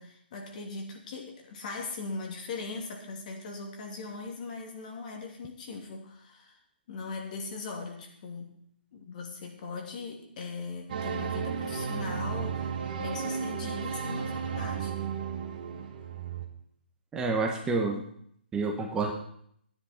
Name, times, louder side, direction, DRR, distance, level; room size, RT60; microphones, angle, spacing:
voice 1, 0.0-6.6 6.9-8.6 8.9-14.9, left 4 dB, 45° left, 1 dB, 2.7 m, -40 dB
sound 1, 10.9-16.5, right 6 dB, 45° right, 1.9 m, -34 dB
voice 2, 17.1-18.0 18.5-19.1, right 3 dB, 15° right, 1 dB, 1.2 m, -28 dB
13.5 x 9.8 x 4.4 m, 0.68 s
figure-of-eight pair, 140°, 6 cm